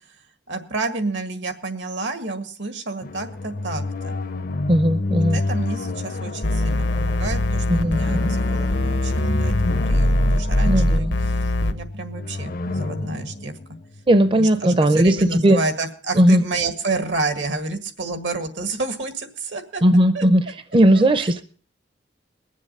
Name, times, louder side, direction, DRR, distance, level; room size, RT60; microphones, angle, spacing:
voice 1, 0.5-4.2 5.3-13.5 14.2-19.8 20.1-20.2 20.9-21.3, right 3 dB, 85° right, 8 dB, 1.9 m, -30 dB
sound 1, 3.0-14.7, left 2 dB, 50° left, 0.6 m, -29 dB
voice 2, 4.7-5.4 7.7-8.3 10.7-11.1 14.1-15.6 16.2-16.4 19.8-20.5 20.7-21.4, right 1 dB, 30° right, 11 dB, 0.5 m, -17 dB
sound 2, 6.4-11.7, left 1 dB, 80° left, 0.9 m, -21 dB
21.5 x 7.5 x 5.4 m, 0.43 s
head